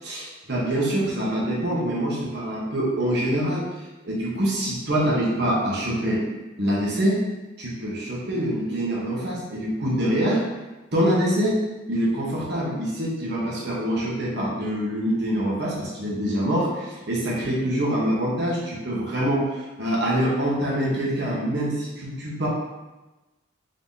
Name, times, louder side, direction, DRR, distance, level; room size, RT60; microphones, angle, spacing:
voice 1, 0.0-3.7 4.0-6.2 6.6-7.2 7.6-10.4 10.9-11.6 11.9-22.5, right 1 dB, 50° right, -5 dB, 1.0 m, -25 dB
3.8 x 2.8 x 3.7 m, 1.1 s
head